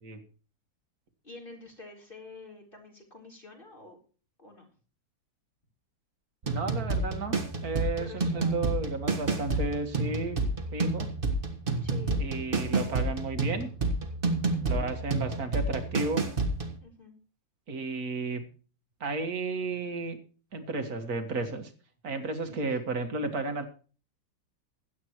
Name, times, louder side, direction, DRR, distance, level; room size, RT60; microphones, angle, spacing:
voice 1, 1.2-4.0 4.4-4.7 8.0-8.6 11.8-12.2 14.5-14.9 16.8-17.1 22.4-22.7, left 3 dB, 25° left, 0 dB, 4.2 m, -48 dB
sound 1, 6.4-16.8, right 3 dB, 30° right, 1.7 m, -30 dB
voice 2, 6.4-7.4 7.6-10.4 10.7-11.1 12.2-13.7 14.6-16.3 17.7-18.5 19.0-20.2 20.5-21.7 22.0-23.7, right 3 dB, 50° right, 6 dB, 2.2 m, -33 dB
17.0 x 11.5 x 3.1 m, 0.38 s
omnidirectional pair, 2.1 m